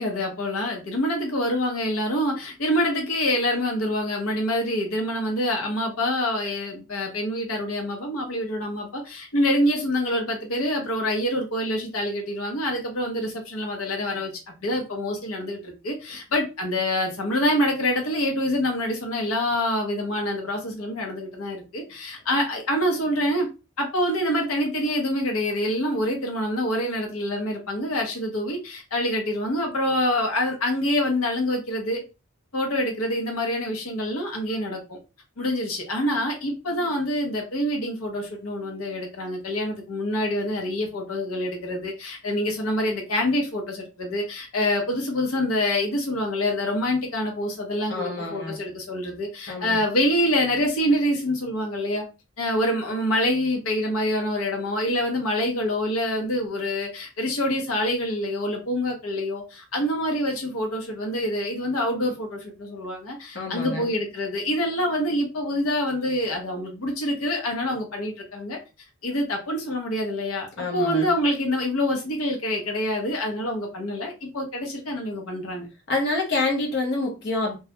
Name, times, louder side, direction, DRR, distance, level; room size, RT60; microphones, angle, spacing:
voice 1, 0.0-14.3 14.6-23.5 23.8-32.0 32.5-35.0 35.4-52.0 52.4-68.6 69.0-75.7, left 1 dB, 90° left, 0.7 m, -26 dB
voice 2, 47.9-48.5 49.5-49.8 63.3-63.8 70.6-71.1 75.9-77.5, left 2 dB, 50° left, 0.7 m, -27 dB
2.2 x 2.1 x 2.7 m
head